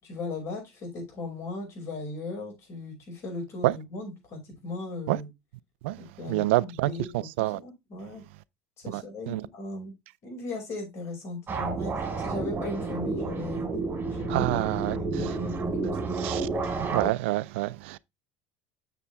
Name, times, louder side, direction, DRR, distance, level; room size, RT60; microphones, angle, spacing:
voice 1, 0.0-5.3 6.2-8.3 8.8-9.9 10.2-16.1 17.0-17.2, left 2 dB, 45° left, 5.4 m, -38 dB
voice 2, 6.3-6.9 7.4-7.6 8.9-9.4 14.3-15.3 16.2-16.5 16.9-18.0, right 19 dB, 80° right, 0.4 m, -27 dB
sound 1, 11.5-17.1, right 4 dB, 30° right, 4.3 m, -30 dB
7.2 x 6.9 x 3.3 m
supercardioid pair, 95°, 6 cm